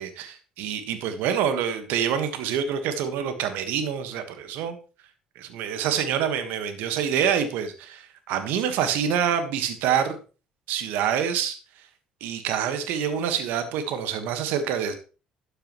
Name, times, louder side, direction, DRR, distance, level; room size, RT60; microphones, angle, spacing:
voice 1, 0.0-4.8 5.3-10.2 10.7-11.6 12.2-15.0, right 8 dB, 70° right, 9 dB, 1.5 m, -26 dB
12.0 x 8.8 x 3.1 m, 0.35 s
hypercardioid pair, 55°, 3 cm